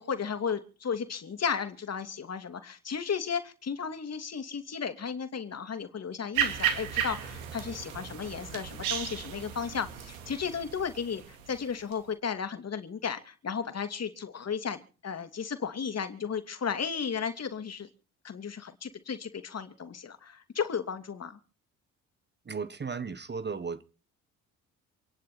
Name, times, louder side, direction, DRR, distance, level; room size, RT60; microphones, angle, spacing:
voice 1, 0.0-17.9 18.2-21.4, left 6 dB, 35° left, 2.8 m, -34 dB
sound 1, 6.3-11.9, right 9 dB, 75° right, 2.7 m, -34 dB
voice 2, 22.5-23.8, right 5 dB, 25° right, 1.4 m, -35 dB
28.0 x 10.5 x 4.4 m
figure-of-eight pair, 50°, 42 cm